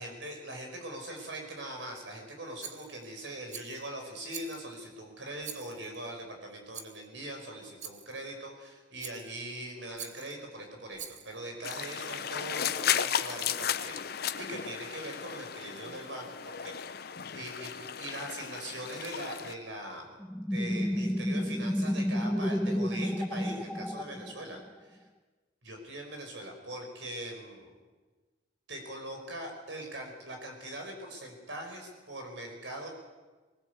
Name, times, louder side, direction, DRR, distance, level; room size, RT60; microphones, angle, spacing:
voice 1, 0.0-14.0 14.4-20.2 20.5-25.0 25.6-27.7 28.7-32.9, right 1 dB, 80° right, 3 dB, 5.2 m, -41 dB
Rattle, 2.6-3.1 3.5-3.9 4.3-4.8 5.4-6.0 6.7-7.1 7.8-8.2 9.0-9.4 10.0-10.4 10.9-11.4, right 8 dB, 40° right, 1.3 m, -45 dB
sound 1, 11.6-19.5, left 8 dB, 55° left, 0.8 m, -34 dB
sound 2, 20.2-24.7, equal, 5° left, 0.6 m, -31 dB
20.5 x 19.5 x 8.1 m, 1.3 s
head